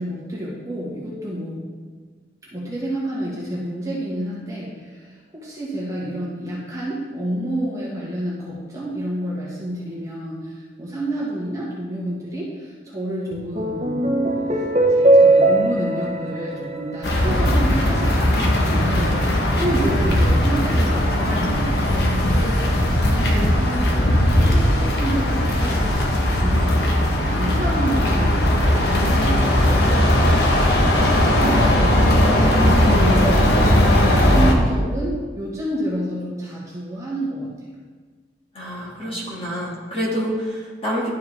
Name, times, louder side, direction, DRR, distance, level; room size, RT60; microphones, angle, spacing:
voice 1, 0.0-1.7 2.5-14.2 14.5-19.2 19.6-27.0 27.3-32.0 32.4-33.4 33.9-37.5, right 1 dB, 20° right, -6 dB, 1.6 m, -29 dB
sound 1, 13.3-17.9, right 2 dB, 40° right, 0.8 m, -19 dB
sound 2, 17.0-34.6, left 1 dB, 70° left, 1.0 m, -18 dB
voice 2, 38.5-41.1, equal, 30° left, -5 dB, 1.8 m, -28 dB
11.5 x 4.7 x 3.3 m, 1.4 s
head